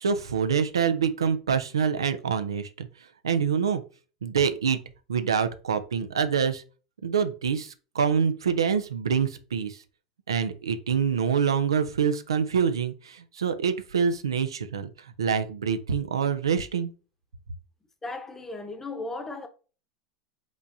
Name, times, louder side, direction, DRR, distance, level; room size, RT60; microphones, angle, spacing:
voice 1, 0.0-2.9 3.2-3.8 4.2-4.8 5.1-6.6 7.0-9.8 10.3-16.9, right 6 dB, 85° right, 0.5 m, -26 dB
voice 2, 18.0-19.5, left 2 dB, 15° left, 0.9 m, -36 dB
5.1 x 3.4 x 2.7 m
hypercardioid pair, 90°, 2 cm